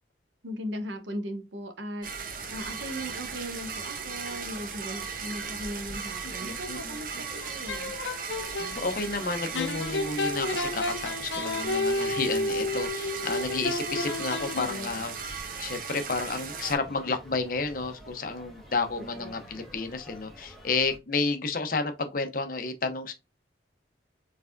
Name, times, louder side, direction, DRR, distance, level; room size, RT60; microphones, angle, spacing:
voice 1, 0.4-7.9 19.0-19.7, equal, 85° right, 1.0 m, -38 dB
sound 1, 2.0-21.0, equal, ahead, 1.3 m, -48 dB
sound 2, 2.0-16.8, right 6 dB, 45° right, 0.7 m, -37 dB
voice 2, 6.4-7.2 8.6-23.1, left 3 dB, 50° left, 0.7 m, -31 dB
sound 3, 7.3-8.7 9.5-15.0, left 2 dB, 85° left, 0.7 m, -31 dB
4.6 x 3.4 x 2.5 m
head